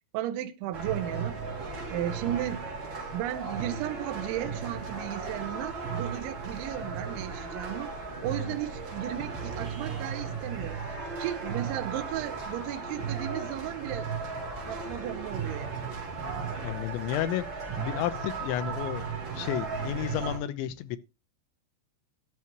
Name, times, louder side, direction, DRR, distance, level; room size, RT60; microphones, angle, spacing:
voice 1, 0.1-1.4 1.9-2.6 3.1-7.9 8.2-14.1 14.7-15.9, right 13 dB, 85° right, 3.3 m, -35 dB
sound 1, 0.7-20.4, right 5 dB, 50° right, 4.8 m, -36 dB
voice 2, 16.6-17.4 17.8-19.1 19.4-21.0, left 12 dB, 85° left, 3.2 m, -32 dB
14.5 x 12.0 x 3.0 m
omnidirectional pair, 5.2 m